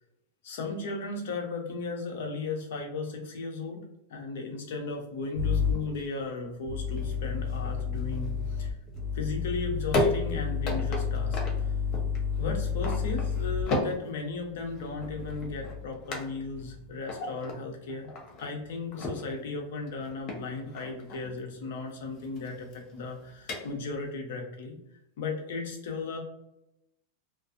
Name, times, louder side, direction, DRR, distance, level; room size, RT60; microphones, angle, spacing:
voice 1, 0.4-8.7 9.1-11.7 12.4-18.1 18.4-24.8 25.2-26.2, left 3 dB, 75° left, 2 dB, 0.8 m, -36 dB
sound 1, 5.2-24.1, left 2 dB, 40° left, 0.7 m, -37 dB
sound 2, 5.4-5.7 6.7-13.6 14.7-15.9 16.4-16.8, left 6 dB, 55° right, 0.3 m, -31 dB
2.4 x 2.3 x 2.5 m, 0.82 s
supercardioid pair, 130°, 0 cm